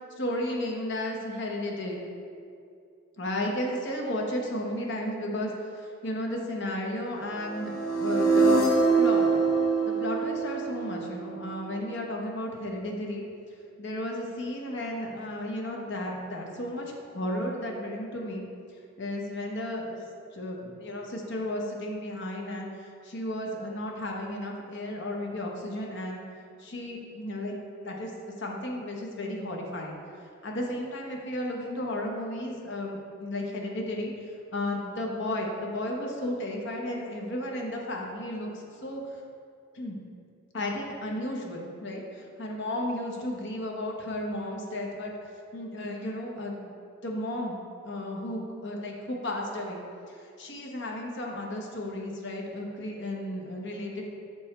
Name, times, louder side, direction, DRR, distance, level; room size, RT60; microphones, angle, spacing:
voice 1, 0.2-2.0 3.2-8.7 9.0-9.4 9.8-13.2 13.8-18.4 19.0-20.0 20.3-26.2 26.6-30.0 30.4-39.0 39.7-40.0 40.5-45.1 45.5-46.7 47.0-47.6 47.8-54.1, left 1 dB, 55° left, 0 dB, 0.9 m, -34 dB
sound 1, 7.4-11.5, right 4 dB, 90° left, 1.0 m, -24 dB
6.2 x 4.7 x 4.3 m, 2.4 s
head